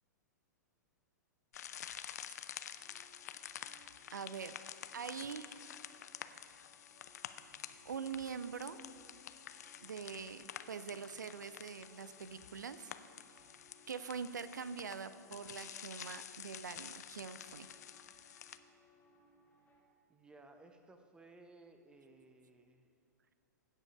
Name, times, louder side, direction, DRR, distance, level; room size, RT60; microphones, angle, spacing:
sound 1, 1.5-18.6, left 10 dB, 60° left, 0.5 m, -50 dB
sound 2, 2.8-19.8, left 1 dB, 15° left, 1.6 m, -67 dB
voice 1, 4.1-4.6 4.9-5.6 7.8-8.8 9.8-12.9 13.9-17.7, right 6 dB, 75° right, 13 dB, 0.4 m, -44 dB
voice 2, 20.1-22.9, right 2 dB, 10° right, 7 dB, 0.7 m, -59 dB
16.0 x 5.4 x 5.4 m, 2.6 s
figure-of-eight pair, 105°, 10 cm